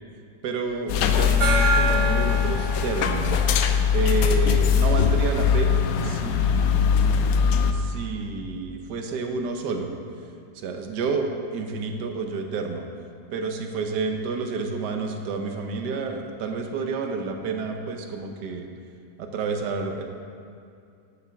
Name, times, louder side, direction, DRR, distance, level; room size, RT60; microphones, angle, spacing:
voice 1, 0.4-3.4 3.9-7.0 7.7-9.9 10.6-12.9 13.3-18.7 19.2-20.0, right 4 dB, 80° right, 4 dB, 1.4 m, -29 dB
sound 1, 0.9-7.7, left 7 dB, 70° left, 0.9 m, -21 dB
Gong, 1.4-4.7, right 3 dB, 60° right, 2.9 m, -27 dB
11.5 x 6.8 x 3.4 m, 2.4 s
omnidirectional pair, 1.8 m